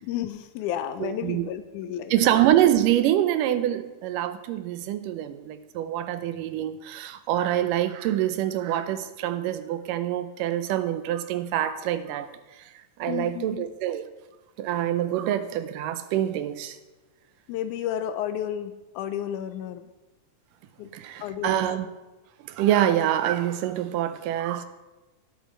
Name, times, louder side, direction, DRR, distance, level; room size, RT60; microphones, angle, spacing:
voice 1, 0.0-2.4 13.1-13.7 17.5-19.9 20.8-20.9 21.2-21.7, left 10 dB, 80° left, 1.9 m, -32 dB
voice 2, 1.0-1.5 2.1-12.3 13.0-14.1 14.6-16.8 20.9-21.9 22.4-24.7, right 12 dB, 90° right, 2.3 m, -25 dB
17.0 x 5.7 x 4.4 m
omnidirectional pair, 3.7 m